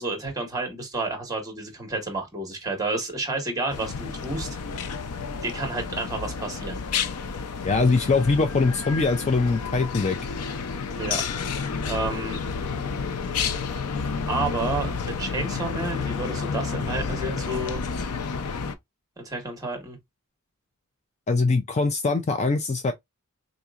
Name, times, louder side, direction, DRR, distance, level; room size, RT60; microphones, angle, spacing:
voice 1, 0.0-4.5 5.4-6.8 10.9-11.2 11.9-12.4 14.3-17.8 19.2-20.0, right 2 dB, 15° right, 1.3 m, -30 dB
sound 1, 3.7-18.8, left 5 dB, 90° left, 0.5 m, -30 dB
voice 2, 7.6-10.2 21.3-22.9, left 3 dB, 30° left, 0.4 m, -22 dB
4.1 x 2.8 x 2.4 m
head